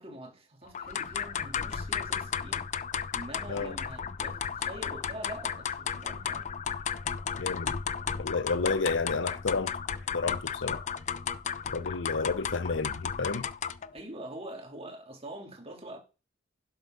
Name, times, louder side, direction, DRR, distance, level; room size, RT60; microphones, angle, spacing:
voice 1, 0.0-2.7 3.1-6.5 13.9-16.0, right 1 dB, 30° right, 3.1 m, -44 dB
sound 1, 0.7-13.9, left 7 dB, 40° left, 0.5 m, -34 dB
voice 2, 7.4-7.7 8.1-9.7 10.1-10.8 11.7-13.5, left 4 dB, 70° left, 0.7 m, -31 dB
12.0 x 7.1 x 3.9 m
head